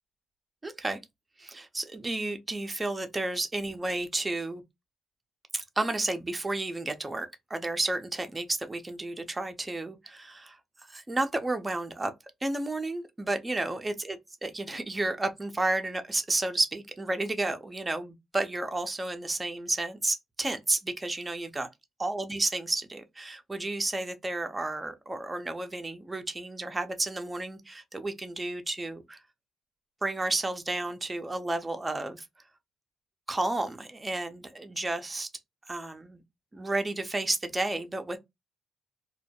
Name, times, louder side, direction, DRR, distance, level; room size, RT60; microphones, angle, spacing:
voice 1, 0.6-1.0 1.4-4.6 5.5-10.6 10.9-12.1 12.4-14.2 14.4-21.7 22.0-29.2 30.0-32.3 33.3-35.3 35.7-36.2 36.5-38.2, right 2 dB, 20° right, 0.5 m, -32 dB
2.2 x 2.1 x 2.8 m
cardioid pair, 90°, 0 cm